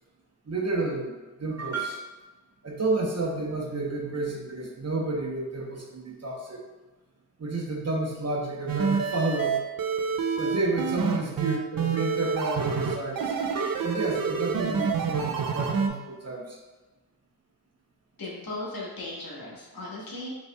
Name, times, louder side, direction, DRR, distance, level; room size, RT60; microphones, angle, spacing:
voice 1, 0.5-1.1 1.4-2.0 2.6-6.6 7.4-9.6 10.4-16.6, right 2 dB, 45° right, -1 dB, 0.9 m, -30 dB
sound 1, 8.7-15.9, right 5 dB, 65° right, 0.6 m, -27 dB
voice 2, 18.2-20.3, left 2 dB, 70° left, -4 dB, 1.3 m, -37 dB
5.3 x 3.2 x 2.3 m, 1.2 s
cardioid pair, 55°, 36 cm